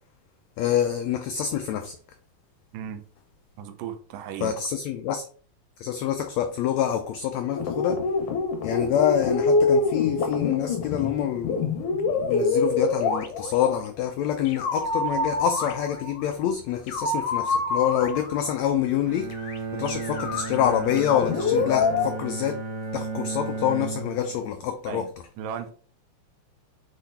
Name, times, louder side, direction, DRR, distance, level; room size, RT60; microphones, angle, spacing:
voice 1, 0.6-2.0 4.4-5.2 5.8-8.0 8.6-11.7 12.1-19.3 19.7-22.6 22.9-25.1, left 10 dB, 85° left, 1.5 m, -26 dB
voice 2, 2.7-3.0 3.6-4.6 24.9-25.1 25.4-25.7, right 9 dB, 85° right, 2.5 m, -35 dB
sound 1, 7.5-13.8 14.5-16.2 16.9-18.6 19.3-19.6 19.9-22.1, left 3 dB, 65° left, 1.6 m, -26 dB
Bowed string instrument, 19.0-24.5, right 4 dB, 55° right, 1.1 m, -34 dB
7.1 x 3.9 x 4.1 m
omnidirectional pair, 3.8 m